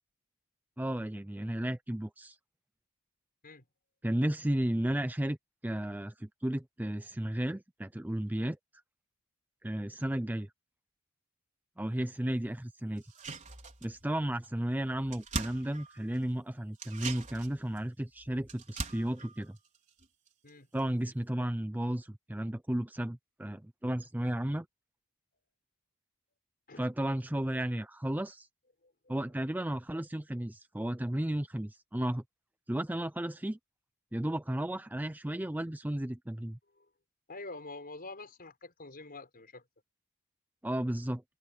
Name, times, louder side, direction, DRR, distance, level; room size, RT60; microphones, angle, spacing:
voice 1, 0.8-2.4 4.0-5.4 5.6-8.6 9.6-10.5 11.8-13.0 13.8-19.6 20.7-24.7 26.8-28.5 29.1-32.2 32.7-33.6 34.1-36.6 40.6-41.2, right 1 dB, 10° right, 0.5 m, -33 dB
sound 1, 13.0-14.1 14.4-14.5 14.8-16.3 16.7-20.5 20.8-20.9, right 3 dB, 35° right, 4.7 m, -42 dB
voice 2, 37.3-39.6, left 3 dB, 45° left, 5.4 m, -46 dB
head